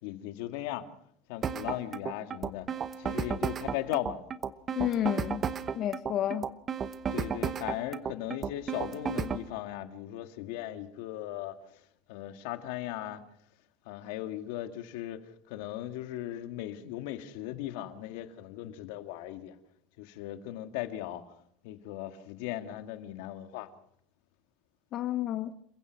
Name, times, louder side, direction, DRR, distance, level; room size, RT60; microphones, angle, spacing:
voice 1, 0.0-0.9 1.3-2.7 3.0-4.2 7.1-11.6 12.1-13.2 13.9-19.6 20.0-21.2 21.6-23.7, left 13 dB, 75° left, 2.1 m, -37 dB
sound 1, 1.4-9.5, right 7 dB, 30° right, 0.9 m, -33 dB
voice 2, 4.7-5.5 5.7-6.5 24.9-25.5, left 11 dB, 45° left, 1.1 m, -30 dB
28.5 x 16.0 x 6.0 m
supercardioid pair, 145°, 0 cm